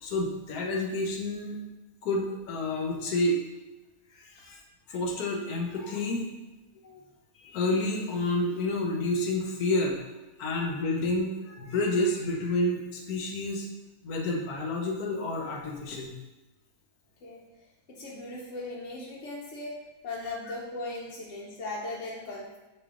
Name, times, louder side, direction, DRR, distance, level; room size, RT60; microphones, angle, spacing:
voice 1, 0.0-1.6 2.0-3.4 4.1-4.6 4.9-6.3 6.8-7.0 7.4-10.0 10.4-13.7 14.0-16.1, left 2 dB, 85° left, 0 dB, 1.3 m, -29 dB
voice 2, 17.9-19.7 20.0-22.6, left 2 dB, 60° left, -4 dB, 0.9 m, -38 dB
5.2 x 2.7 x 3.6 m, 1.1 s
omnidirectional pair, 1.6 m